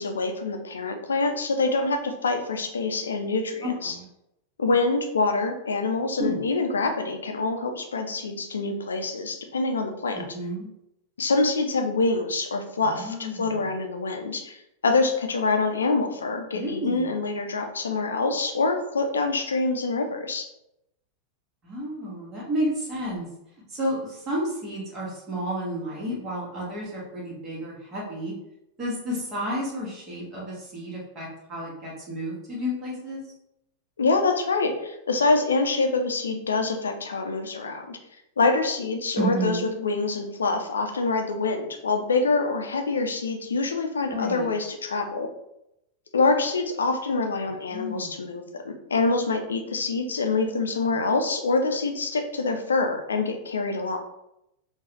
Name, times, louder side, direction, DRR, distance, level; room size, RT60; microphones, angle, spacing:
voice 1, 0.0-4.0 4.6-10.2 11.2-14.6 14.8-20.5 34.0-38.0 38.4-45.3 46.1-54.0, left 3 dB, 70° left, 5 dB, 0.5 m, -25 dB
voice 2, 3.6-4.0 6.2-6.4 10.3-10.7 12.8-13.6 16.5-17.0 21.6-23.3 23.7-28.3 28.8-33.2 39.2-39.7 44.1-44.5 47.7-48.1, equal, 30° right, -5 dB, 1.2 m, -31 dB
3.8 x 2.3 x 2.9 m, 0.83 s
figure-of-eight pair, 90°, 0 cm